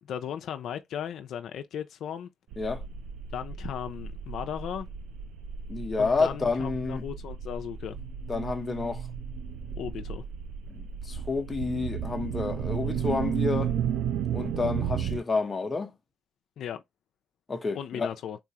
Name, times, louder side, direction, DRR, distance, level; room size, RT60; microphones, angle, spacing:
voice 1, 0.0-2.3 3.3-4.9 6.0-8.0 9.8-10.2 16.6-16.8 17.7-18.4, left 9 dB, 75° left, 0.4 m, -36 dB
sound 1, 2.5-15.2, right 8 dB, 85° right, 0.4 m, -33 dB
voice 2, 5.7-7.0 8.3-9.1 10.7-13.7 14.3-15.9 17.5-18.1, left 4 dB, 25° left, 0.7 m, -29 dB
3.9 x 2.3 x 2.8 m
cardioid pair, 90°, 0 cm